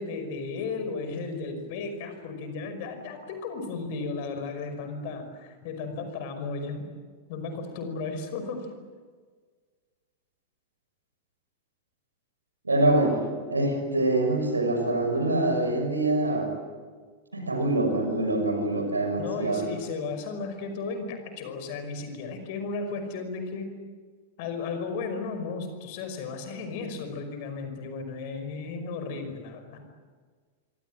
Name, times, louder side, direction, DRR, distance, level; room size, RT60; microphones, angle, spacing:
voice 1, 0.0-6.9 7.3-8.7 19.2-23.7 24.4-29.8, left 4 dB, 50° left, 7 dB, 5.5 m, -34 dB
voice 2, 12.6-13.2 13.5-16.5 17.3-19.6, right 2 dB, 80° right, 5 dB, 5.9 m, -25 dB
26.5 x 24.5 x 7.8 m, 1.5 s
figure-of-eight pair, 90°, 0 cm